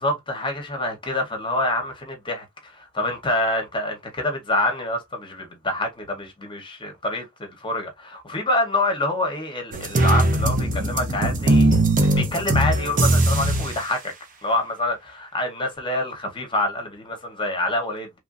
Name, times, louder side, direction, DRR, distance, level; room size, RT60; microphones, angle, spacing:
voice 1, 0.0-14.1 14.4-18.2, left 1 dB, 25° left, 0.9 m, -26 dB
sound 1, 9.7-13.8, right 1 dB, 35° right, 0.7 m, -20 dB
3.1 x 2.5 x 2.4 m
head